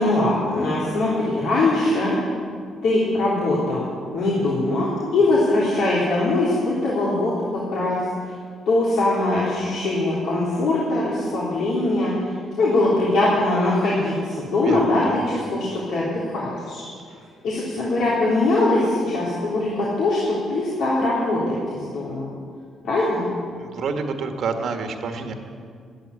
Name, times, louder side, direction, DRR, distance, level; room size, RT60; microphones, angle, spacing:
voice 1, 0.0-2.2 2.8-3.8 4.1-8.0 8.2-8.3 8.6-16.8 17.4-22.3 22.8-23.2, left 2 dB, 80° left, -7 dB, 3.4 m, -22 dB
voice 2, 14.6-15.2 17.1-17.2 23.5-25.3, right 5 dB, 70° right, 5 dB, 1.6 m, -28 dB
12.5 x 11.5 x 8.4 m, 2.2 s
cardioid pair, 90°, 0 cm